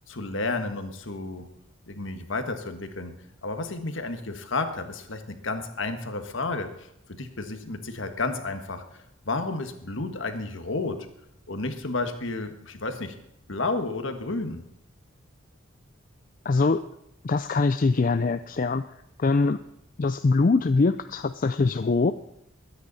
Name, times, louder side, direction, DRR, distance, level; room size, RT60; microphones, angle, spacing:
voice 1, 0.1-1.5 1.9-3.1 3.4-6.7 7.1-8.8 9.2-11.0 11.5-13.1 13.5-14.6, left 3 dB, 60° left, 7 dB, 1.6 m, -31 dB
voice 2, 16.4-16.8 17.2-18.8 19.2-19.6 20.0-22.1, left 3 dB, 40° left, 10 dB, 0.4 m, -23 dB
22.0 x 9.7 x 4.2 m, 0.77 s
head